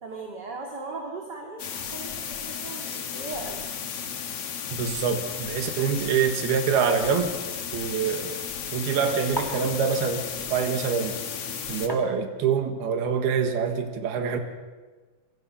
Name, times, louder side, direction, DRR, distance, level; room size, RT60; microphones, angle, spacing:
voice 1, 0.0-3.7, right 3 dB, 30° right, 1 dB, 2.4 m, -38 dB
sound 1, 1.6-11.9, left 7 dB, 50° left, 2.0 m, -34 dB
voice 2, 4.7-7.3 7.7-8.4 8.7-11.2 11.7-14.4, right 6 dB, 85° right, 6 dB, 3.7 m, -25 dB
sound 2, 6.9-7.2 9.4-9.8 11.9-12.5, equal, 5° left, 2.4 m, -35 dB
28.0 x 24.0 x 5.8 m, 1.3 s
omnidirectional pair, 4.4 m